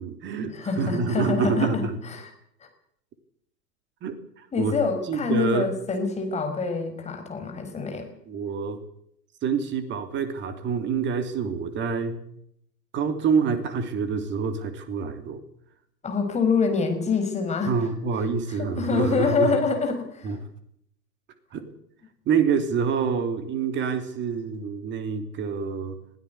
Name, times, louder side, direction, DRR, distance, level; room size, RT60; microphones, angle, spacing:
voice 1, 0.0-1.9 4.0-4.2 4.6-4.7 5.1-5.7 8.3-8.8 9.4-12.2 12.9-15.4 17.7-19.6 20.2-20.4 21.5-21.7 22.3-26.0, right 6 dB, 20° right, 9 dB, 3.0 m, -26 dB
voice 2, 0.5-2.3 2.6-2.7 4.5-8.1 16.0-17.7 18.2-20.4, left 5 dB, 15° left, 5 dB, 5.3 m, -26 dB
22.0 x 16.5 x 8.3 m, 0.71 s
figure-of-eight pair, 115°, 49 cm